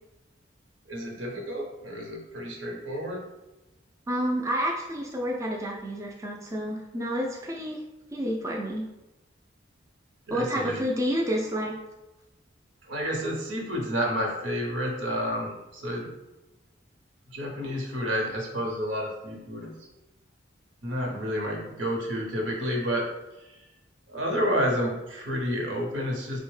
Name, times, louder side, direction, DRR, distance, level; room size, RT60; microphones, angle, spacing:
voice 1, 0.9-3.2 10.3-10.8 12.8-16.1 17.3-19.7 20.8-23.0 23.4-23.6 24.1-26.4, equal, 75° right, 0 dB, 0.8 m, -30 dB
voice 2, 4.1-7.8 8.1-8.8 10.3-11.8, equal, 15° right, -2 dB, 0.3 m, -29 dB
3.8 x 2.1 x 3.1 m, 0.99 s
head